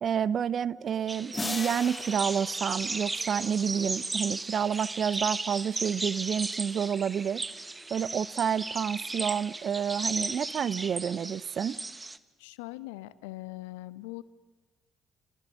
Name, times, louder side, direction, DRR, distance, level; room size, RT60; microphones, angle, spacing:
voice 1, 0.0-7.4 7.9-11.8, right 8 dB, 50° right, 20 dB, 0.7 m, -29 dB
sound 1, 0.7-10.7, left 1 dB, 5° left, 7.5 m, -61 dB
sound 2, 1.1-12.2, right 3 dB, 20° right, 1.3 m, -35 dB
sound 3, 1.3-4.1, left 3 dB, 25° left, 1.0 m, -39 dB
voice 2, 12.4-14.2, left 19 dB, 75° left, 17 dB, 0.9 m, -41 dB
29.5 x 27.0 x 6.4 m, 1.3 s
hypercardioid pair, 50°, 0 cm